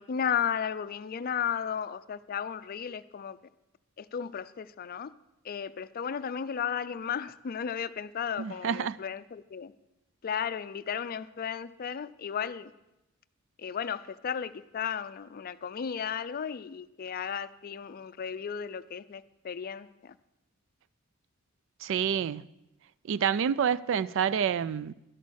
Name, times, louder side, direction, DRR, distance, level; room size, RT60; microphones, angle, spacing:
voice 1, 0.0-3.4 4.0-5.1 5.4-9.7 10.2-12.7 13.6-20.2, left 7 dB, 45° left, 0.4 m, -34 dB
voice 2, 8.4-9.0 21.8-22.5 23.1-24.9, right 8 dB, 65° right, 0.3 m, -28 dB
12.0 x 8.3 x 6.4 m
head